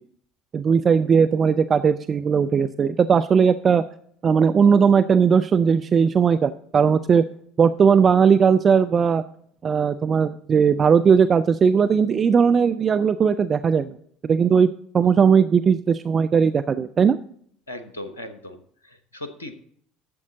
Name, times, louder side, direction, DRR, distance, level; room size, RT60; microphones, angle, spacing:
voice 1, 0.5-3.8 4.2-7.2 7.6-9.2 9.6-13.9 14.2-14.7 14.9-17.2, right 6 dB, 30° right, 11 dB, 0.4 m, -18 dB
voice 2, 17.7-19.5, left 1 dB, 80° left, 10 dB, 0.9 m, -38 dB
12.5 x 7.3 x 3.8 m, 0.65 s
figure-of-eight pair, 65°, 0 cm